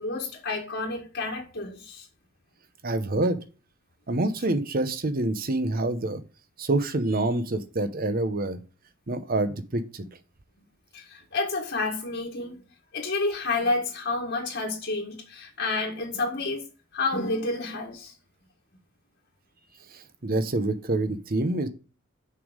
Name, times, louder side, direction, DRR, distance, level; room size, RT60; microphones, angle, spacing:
voice 1, 0.0-2.1 10.9-12.6 12.9-16.6 16.9-18.1, left 3 dB, 60° left, 1.7 m, -29 dB
voice 2, 2.8-3.4 4.1-6.2 6.6-8.6 9.1-10.0 19.9-21.7, right 2 dB, 50° right, 0.9 m, -26 dB
6.7 x 5.4 x 5.1 m
head